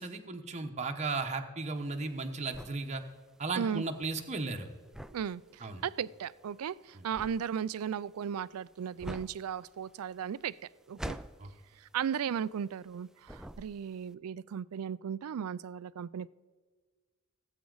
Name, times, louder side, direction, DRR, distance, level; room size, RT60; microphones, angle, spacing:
voice 1, 0.0-3.0 3.4-4.7 5.6-5.8 6.9-7.0 11.4-11.5, right 3 dB, 30° right, 4 dB, 0.9 m, -35 dB
sound 1, 1.8-13.0 13.2-14.1, right 1 dB, ahead, 0.3 m, -46 dB
voice 2, 5.1-10.6 10.9-11.2 11.8-16.3, right 8 dB, 75° right, 19 dB, 0.4 m, -36 dB
18.5 x 8.2 x 3.9 m, 1.4 s
head